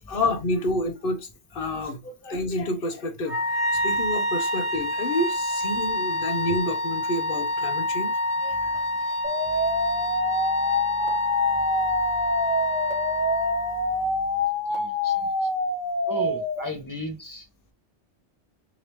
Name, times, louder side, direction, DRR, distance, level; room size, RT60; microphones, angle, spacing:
voice 1, 0.1-8.1 8.4-9.1 9.5-9.8, left 1 dB, 55° left, 1.1 m, -29 dB
Wind instrument woodwind instrument, 3.2-14.0, left 1 dB, 90° right, 1.4 m, -27 dB
sound 1, 9.2-16.6, left 2 dB, 40° right, 1.9 m, -26 dB
voice 2, 14.7-15.1 16.1-17.4, left 1 dB, 20° left, 1.0 m, -34 dB
4.9 x 2.9 x 3.1 m
omnidirectional pair, 1.2 m